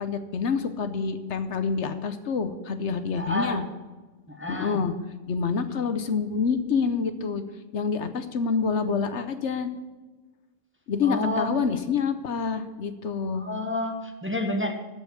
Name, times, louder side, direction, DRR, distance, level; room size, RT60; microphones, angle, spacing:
voice 1, 0.0-3.6 4.5-4.9 5.3-7.4 7.7-9.7 10.9-13.4, left 5 dB, 70° left, 10 dB, 1.1 m, -27 dB
voice 2, 3.2-3.7 4.3-4.8 11.0-11.6 13.3-14.8, left 1 dB, 10° right, 3 dB, 1.0 m, -29 dB
14.0 x 5.3 x 7.9 m, 1.2 s
omnidirectional pair, 1.3 m